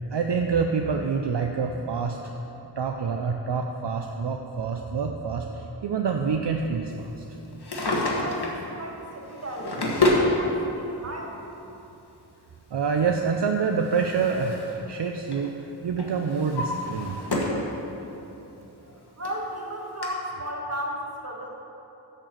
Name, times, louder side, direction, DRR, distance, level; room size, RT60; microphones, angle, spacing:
voice 1, 0.1-2.3 2.8-7.2 12.7-17.2, right 5 dB, 65° right, 3 dB, 0.6 m, -27 dB
Drawer open or close, 7.5-8.6 9.3-10.3 11.4-11.5 13.3-14.8 15.1-15.5 16.0-17.7 18.1-18.2 18.9-19.0 19.2-19.3 20.0-20.1, left 2 dB, 60° left, 1.6 m, -27 dB
voice 2, 8.2-11.4 18.9-21.5, equal, 35° right, -1 dB, 1.7 m, -35 dB
10.5 x 4.5 x 7.4 m, 3.0 s
wide cardioid pair, 50°, 45 cm